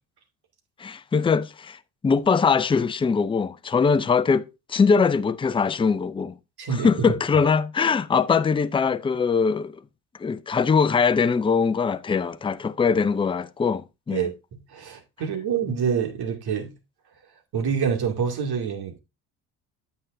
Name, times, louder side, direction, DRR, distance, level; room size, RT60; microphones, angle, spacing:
voice 1, 0.8-1.8 2.0-6.4 6.8-9.8 10.2-14.3, left 5 dB, 10° left, 0.5 m, -22 dB
voice 2, 6.6-7.1 14.1-14.3 14.7-16.7 17.5-19.0, right 7 dB, 55° right, 2.4 m, -26 dB
9.0 x 8.7 x 2.6 m
hypercardioid pair, 60°, 47 cm